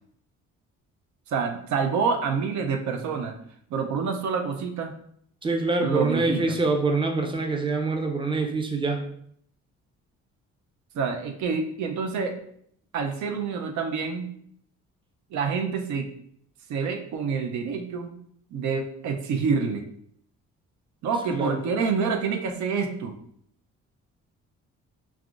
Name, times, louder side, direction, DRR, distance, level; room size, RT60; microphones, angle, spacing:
voice 1, 1.3-3.3 3.7-4.9 5.8-6.4 10.9-12.4 12.9-14.3 15.3-16.1 16.7-18.1 18.5-19.8 21.0-23.2, right 5 dB, 70° right, 4 dB, 0.5 m, -27 dB
voice 2, 5.4-9.0 21.3-21.6, right 3 dB, 15° right, 3 dB, 0.5 m, -25 dB
3.4 x 2.5 x 2.4 m, 0.66 s
cardioid pair, 90°, 30 cm